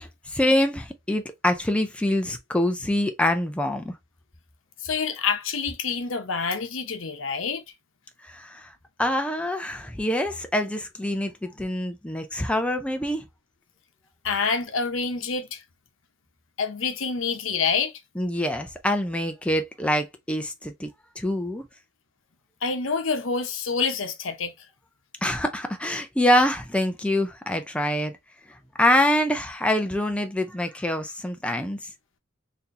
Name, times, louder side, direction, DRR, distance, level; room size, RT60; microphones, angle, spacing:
voice 1, 0.0-3.9 8.3-8.7 9.0-13.2 18.2-20.9 21.2-21.6 25.2-28.1 28.8-31.8, left 1 dB, 5° left, 0.5 m, -25 dB
voice 2, 4.8-7.6 14.2-15.6 16.6-17.9 22.6-24.5, left 5 dB, 80° left, 0.8 m, -27 dB
4.2 x 2.8 x 2.5 m
head